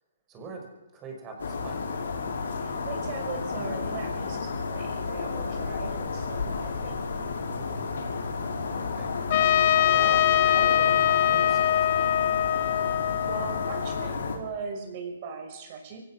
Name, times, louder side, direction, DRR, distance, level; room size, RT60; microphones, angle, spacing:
voice 1, 0.3-0.7 0.9-1.8 8.4-9.1 9.9-12.1, right 4 dB, 20° right, 2 dB, 5.9 m, -42 dB
sound 1, 1.4-14.4, left 4 dB, 75° left, 5.9 m, -32 dB
voice 2, 2.6-6.9 13.0-16.0, right 5 dB, 40° right, 4 dB, 6.1 m, -39 dB
Trumpet, 9.3-14.1, left 11 dB, 45° left, 0.9 m, -23 dB
24.0 x 16.5 x 6.4 m, 1.0 s
hypercardioid pair, 150°, 0 cm